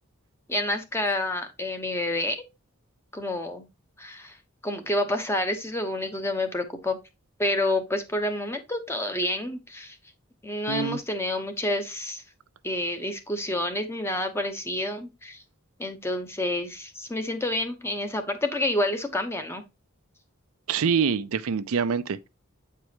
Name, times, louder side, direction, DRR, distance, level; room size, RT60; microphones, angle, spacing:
voice 1, 0.5-2.4 3.1-3.7 4.0-4.3 4.6-7.0 7.4-10.0 10.4-12.2 12.6-15.4 15.8-19.6, left 1 dB, 10° left, 0.9 m, -28 dB
voice 2, 10.7-11.0 20.7-22.3, right 6 dB, 80° right, 0.5 m, -25 dB
8.2 x 4.7 x 2.8 m
head